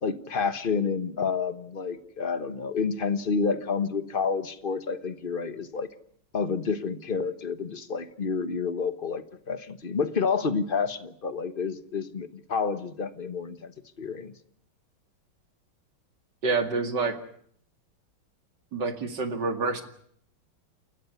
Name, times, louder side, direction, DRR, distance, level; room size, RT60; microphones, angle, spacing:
voice 1, 0.0-5.9 6.3-13.7 14.0-14.3, left 5 dB, 30° left, 12 dB, 1.1 m, -29 dB
voice 2, 16.4-17.2 18.7-19.8, right 4 dB, 60° right, 7 dB, 2.8 m, -27 dB
29.0 x 14.0 x 9.6 m, 0.66 s
omnidirectional pair, 2.2 m